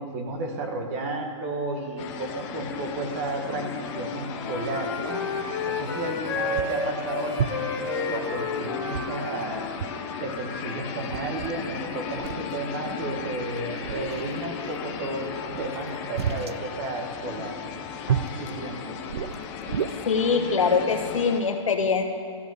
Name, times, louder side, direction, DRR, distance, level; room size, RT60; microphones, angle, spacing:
voice 1, 0.0-9.6 10.2-17.6 18.1-19.0, right 2 dB, 25° right, 3 dB, 1.1 m, -33 dB
sound 1, 2.0-21.4, left 7 dB, 15° left, 0.5 m, -36 dB
Wind instrument woodwind instrument, 3.9-10.3, left 3 dB, 40° left, 1.4 m, -31 dB
sound 2, 6.1-6.2 6.6-6.9 7.4-7.8 8.9-9.5 9.8-10.0 10.3-10.4 10.8-11.6 12.2-12.5 13.2-13.4 13.8-14.4 15.5-16.6 18.1-18.4 19.1-19.9, right 9 dB, 55° right, 0.4 m, -31 dB
voice 2, 20.1-22.0, left 5 dB, 85° left, 4 dB, 1.3 m, -23 dB
14.0 x 5.1 x 7.7 m, 2.3 s
hypercardioid pair, 165°, 16 cm